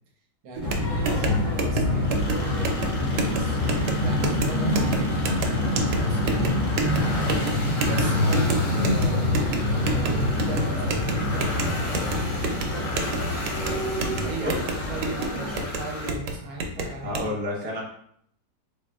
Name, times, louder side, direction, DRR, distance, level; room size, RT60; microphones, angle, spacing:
voice 1, 0.4-3.6 4.0-7.2 7.8-13.9 14.2-17.3, right 3 dB, 70° right, 0 dB, 1.1 m, -38 dB
sound 1, 0.6-15.6, left 1 dB, 75° left, 0.4 m, -26 dB
sound 2, 0.6-17.3, right 2 dB, 85° right, 1.2 m, -31 dB
sound 3, 2.0-16.1, left 2 dB, 60° left, 1.0 m, -35 dB
voice 2, 17.0-17.8, left 1 dB, 10° right, -5 dB, 0.5 m, -29 dB
3.6 x 3.6 x 2.2 m, 0.66 s
omnidirectional pair, 1.8 m